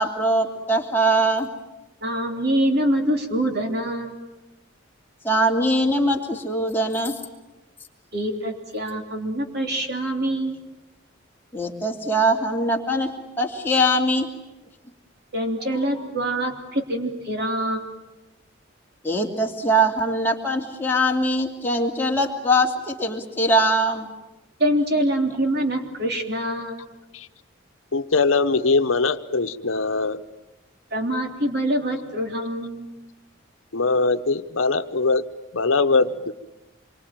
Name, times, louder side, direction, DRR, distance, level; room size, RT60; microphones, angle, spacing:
voice 1, 0.0-1.5 5.2-7.2 11.5-14.3 19.0-24.1, right 1 dB, 10° left, 0 dB, 2.7 m, -22 dB
voice 2, 2.0-4.2 8.1-10.6 15.3-17.8 24.6-26.9 30.9-32.9, right 1 dB, 50° right, 4 dB, 3.3 m, -25 dB
voice 3, 27.9-30.2 33.7-35.3 35.5-36.3, left 3 dB, 80° left, 10 dB, 1.0 m, -21 dB
27.0 x 24.0 x 9.1 m, 1.0 s
head